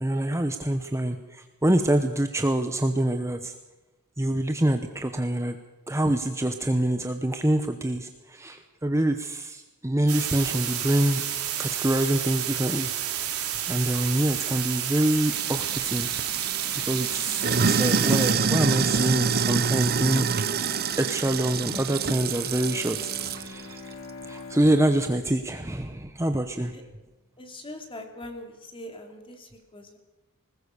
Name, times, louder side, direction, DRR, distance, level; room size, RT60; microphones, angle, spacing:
voice 1, 0.0-3.5 4.2-5.6 5.9-11.2 11.6-12.9 13.7-16.1 16.8-20.7 21.0-23.9 24.3-26.7, right 1 dB, 15° right, 7 dB, 0.9 m, -26 dB
sound 1, 10.1-18.3, right 10 dB, 90° right, 3.4 m, -30 dB
Sink (filling or washing), 15.3-23.5, right 5 dB, 45° right, 0.9 m, -26 dB
Bowed string instrument, 21.6-26.9, left 3 dB, 60° left, 2.5 m, -44 dB
voice 2, 27.4-30.0, left 1 dB, 25° left, 4 dB, 2.9 m, -42 dB
20.5 x 20.0 x 6.8 m, 1.1 s
head